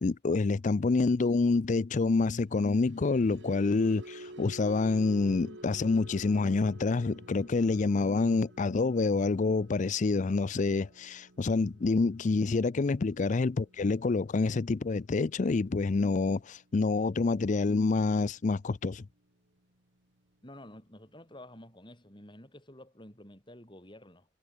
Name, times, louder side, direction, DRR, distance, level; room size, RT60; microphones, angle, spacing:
voice 1, 0.0-19.0, left 3 dB, 40° left, 0.4 m, -27 dB
sound 1, 2.5-18.8 19.2-19.5 19.8-20.1, right 1 dB, 70° right, 4.1 m, -52 dB
voice 2, 20.4-24.3, left 1 dB, 25° left, 7.1 m, -50 dB
head